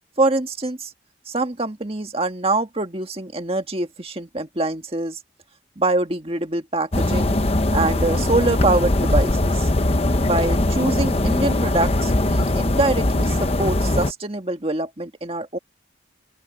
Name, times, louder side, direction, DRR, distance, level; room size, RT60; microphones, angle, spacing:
voice 1, 0.2-0.9 1.3-5.2 5.8-7.4 7.7-9.7 10.2-15.6, right 2 dB, 30° right, 1.8 m, -24 dB
sound 1, 6.9-14.1, left 1 dB, 30° left, 0.9 m, -20 dB
open air
head